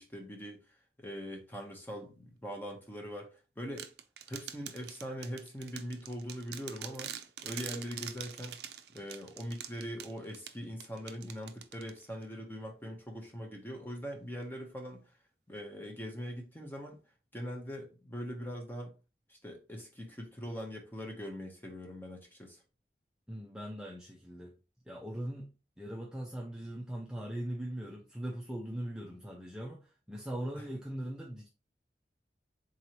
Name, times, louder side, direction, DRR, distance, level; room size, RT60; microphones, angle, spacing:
voice 1, 0.0-3.9 4.3-7.1 7.4-8.6 8.9-15.0 15.5-17.0 17.3-18.9 19.3-22.6 30.6-30.7, equal, 10° left, 0.8 m, -42 dB
sound 1, 3.8-12.2, right 10 dB, 70° right, 0.4 m, -45 dB
voice 2, 23.3-24.5 24.9-25.5 25.8-31.5, right 1 dB, 5° right, 0.4 m, -40 dB
3.8 x 3.0 x 2.9 m
head